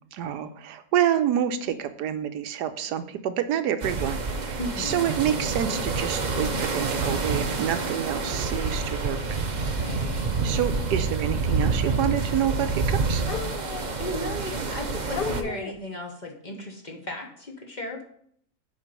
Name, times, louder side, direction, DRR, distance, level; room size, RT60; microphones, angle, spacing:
voice 1, 0.1-9.2 10.4-13.2, right 10 dB, 90° right, 9 dB, 1.3 m, -28 dB
sound 1, 3.8-15.4, right 4 dB, 45° right, 0.5 m, -28 dB
voice 2, 4.6-5.1 9.7-10.4 13.6-18.0, left 1 dB, 30° left, 1 dB, 1.0 m, -36 dB
sound 2, 9.0-9.1 11.5-11.6 13.2-14.0 14.7-14.8 15.1-15.9, left 7 dB, 60° left, 0.6 m, -35 dB
7.5 x 5.1 x 5.4 m, 0.65 s
omnidirectional pair, 1.7 m